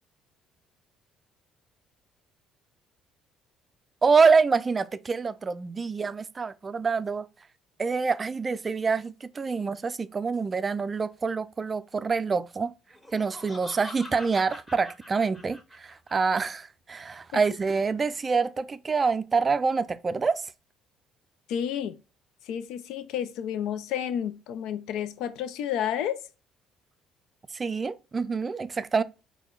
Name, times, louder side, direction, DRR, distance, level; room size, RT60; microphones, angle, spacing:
voice 1, 4.0-7.3 7.8-12.7 13.1-20.5 27.5-29.0, right 4 dB, 30° right, 0.3 m, -26 dB
Laughter, 12.9-16.1, left 1 dB, 15° left, 1.6 m, -44 dB
voice 2, 21.5-22.0 22.5-26.2, left 9 dB, 75° left, 0.4 m, -31 dB
4.2 x 2.2 x 3.8 m
supercardioid pair, 80°, 0 cm